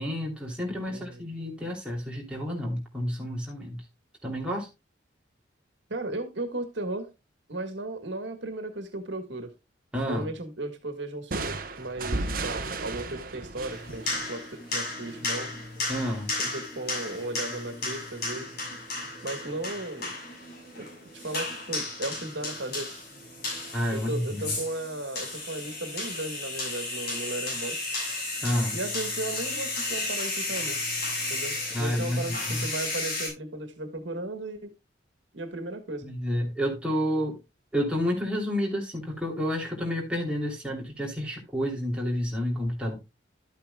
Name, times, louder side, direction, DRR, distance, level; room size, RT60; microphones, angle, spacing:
voice 1, 0.0-3.8 4.2-4.7 9.9-10.3 15.9-16.3 23.7-24.4 28.4-28.8 31.7-32.7 36.0-37.4 37.7-43.0, equal, 5° right, 3.0 m, -30 dB
voice 2, 0.9-1.2 5.9-7.1 7.5-9.5 10.0-15.5 16.4-18.6 19.2-20.1 20.8-20.9 21.1-23.0 23.9-27.9 28.7-30.8 31.3-34.7 35.3-36.1, right 2 dB, 75° right, 1.6 m, -36 dB
sound 1, 11.3-15.0, right 3 dB, 50° right, 1.0 m, -34 dB
sound 2, 13.7-33.3, left 2 dB, 55° left, 6.7 m, -34 dB
12.5 x 8.7 x 2.3 m
head